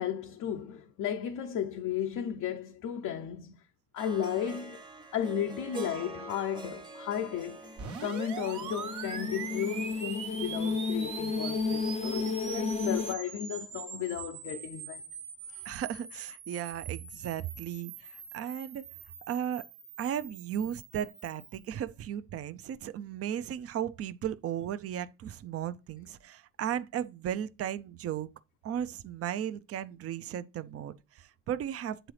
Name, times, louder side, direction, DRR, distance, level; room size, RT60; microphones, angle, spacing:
voice 1, 0.0-3.6 3.9-4.8 5.1-15.0 15.5-15.7, left 9 dB, 75° left, 0.6 m, -34 dB
Harp, 4.0-11.1, right 3 dB, 15° right, 0.8 m, -46 dB
sound 1, 7.7-13.1, left 4 dB, 20° left, 0.5 m, -33 dB
sound 2, 7.8-21.6, right 6 dB, 75° right, 1.3 m, -43 dB
voice 2, 15.6-18.9 19.3-19.7 20.0-28.3 28.6-32.1, right 10 dB, 50° right, 0.5 m, -35 dB
9.0 x 3.8 x 3.2 m
cardioid pair, 90°, 30 cm